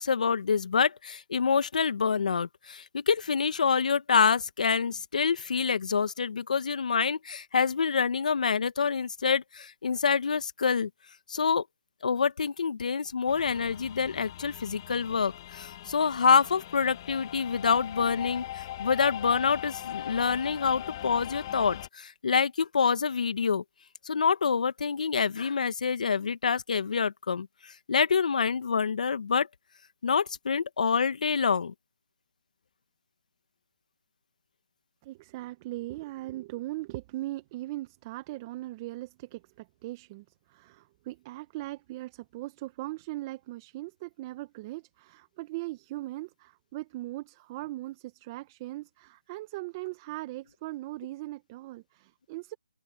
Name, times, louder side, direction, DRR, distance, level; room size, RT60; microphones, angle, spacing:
voice 1, 0.0-10.9 11.3-11.6 12.0-23.6 24.0-29.5 30.0-31.7, left 6 dB, 60° left, 1.7 m, -27 dB
sound 1, 13.3-21.9, left 13 dB, 30° left, 2.4 m, -40 dB
voice 2, 35.0-52.5, right 18 dB, 25° right, 1.2 m, -39 dB
open air
hypercardioid pair, 160°, 5 cm